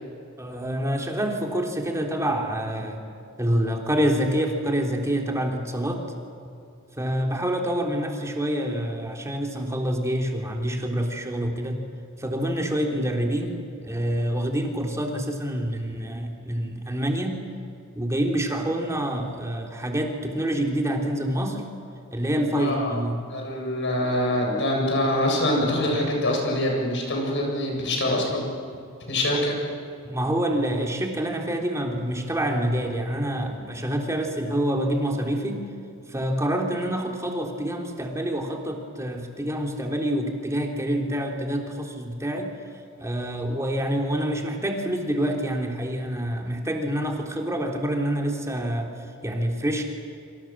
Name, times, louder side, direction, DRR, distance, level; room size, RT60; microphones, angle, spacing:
voice 1, 0.4-3.0 3.4-6.0 7.0-11.8 12.2-13.6 13.8-17.5 17.9-21.6 22.1-23.2 30.0-35.7 36.1-42.5 43.0-48.9 49.2-49.8, right 1 dB, 15° right, 1 dB, 3.4 m, -27 dB
voice 2, 22.6-23.0 23.3-28.5 29.1-29.6, left 1 dB, 60° left, 0 dB, 7.9 m, -24 dB
27.5 x 25.5 x 7.5 m, 2.5 s
head